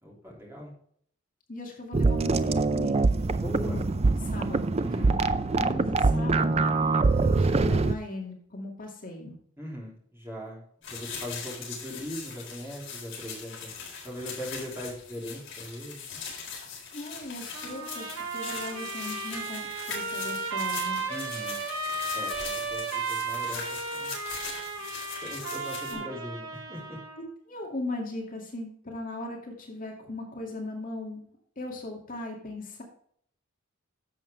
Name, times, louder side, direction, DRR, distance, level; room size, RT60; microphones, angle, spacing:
voice 1, 0.0-0.7 3.4-3.8 4.8-5.2 9.6-10.6 10.9-13.7 14.0-16.2 21.1-21.6 22.1-24.2 25.2-27.0, equal, 10° right, -3 dB, 3.3 m, -40 dB
voice 2, 1.5-3.0 3.5-3.8 4.2-6.7 7.0-9.4 16.9-21.0 25.9-26.1 27.5-31.2 31.6-32.8, left 2 dB, 40° left, 0 dB, 2.3 m, -38 dB
sound 1, 1.9-7.9, right 3 dB, 30° right, 0.5 m, -24 dB
sound 2, 10.8-25.9, left 6 dB, 60° left, 4.3 m, -40 dB
Trumpet, 17.5-27.2, right 4 dB, 85° right, 2.8 m, -34 dB
11.0 x 7.4 x 3.4 m, 0.63 s
head